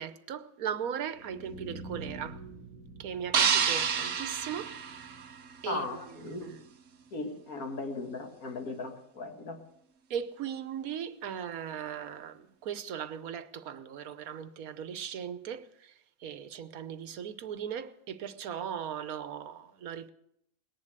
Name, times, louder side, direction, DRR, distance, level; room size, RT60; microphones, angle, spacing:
voice 1, 0.0-2.4 3.0-4.8 5.6-6.7 10.1-15.9 16.2-20.1, right 8 dB, 85° right, 1.4 m, -38 dB
sound 1, 1.0-7.0, right 2 dB, 60° left, 3.6 m, -48 dB
sound 2, 3.3-5.6, right 7 dB, 65° right, 1.2 m, -28 dB
voice 2, 5.7-6.5 7.1-9.6, left 3 dB, 90° left, 2.3 m, -37 dB
19.0 x 11.0 x 6.6 m
omnidirectional pair, 1.5 m